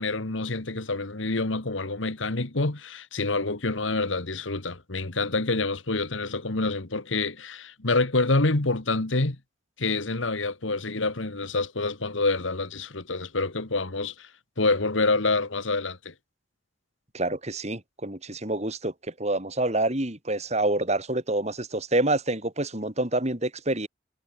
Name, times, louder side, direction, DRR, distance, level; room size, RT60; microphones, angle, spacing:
voice 1, 0.0-9.4 9.8-14.3 14.6-16.1, left 3 dB, 80° left, 1.9 m, -27 dB
voice 2, 17.1-23.9, right 2 dB, 35° right, 3.6 m, -27 dB
head